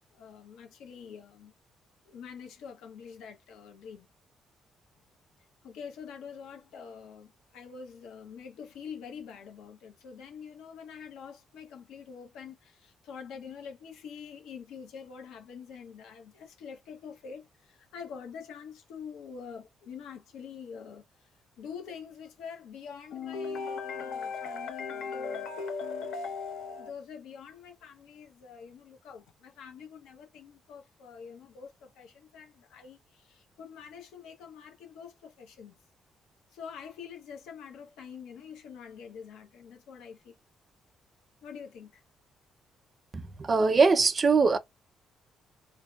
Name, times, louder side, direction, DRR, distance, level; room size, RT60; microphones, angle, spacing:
voice 1, 0.1-1.5 2.1-4.1 5.6-21.3 21.6-35.8 36.5-40.3 41.4-42.0, left 6 dB, 85° left, 0.7 m, -43 dB
voice 2, 43.1-44.6, right 4 dB, 35° right, 0.5 m, -22 dB
2.7 x 2.0 x 2.3 m
cardioid pair, 90°, 0 cm